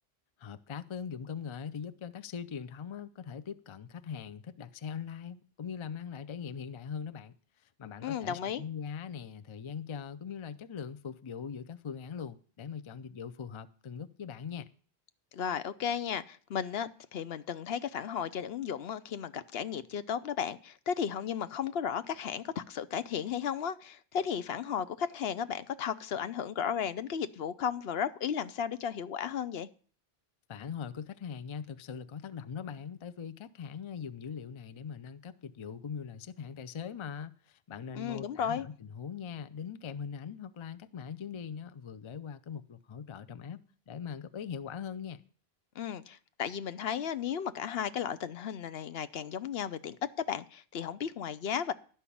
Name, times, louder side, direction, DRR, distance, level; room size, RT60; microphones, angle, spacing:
voice 1, 0.4-7.3 7.6-14.7 30.5-43.6 43.9-45.2, left 7 dB, 40° left, 0.5 m, -41 dB
voice 2, 8.0-8.6 15.3-29.7 37.9-38.7 45.8-50.0 50.3-51.7, left 8 dB, 70° left, 0.9 m, -34 dB
12.0 x 5.6 x 8.4 m
omnidirectional pair, 1.1 m